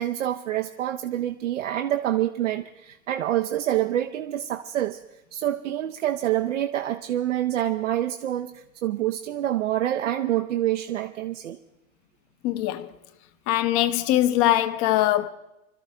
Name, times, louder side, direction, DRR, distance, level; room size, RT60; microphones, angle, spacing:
voice 1, 0.0-5.0 5.3-11.6, right 12 dB, 60° right, 0.8 m, -27 dB
voice 2, 12.4-12.9 13.5-15.3, left 14 dB, 35° left, 0.9 m, -22 dB
25.5 x 13.0 x 3.4 m
figure-of-eight pair, 95°, 42 cm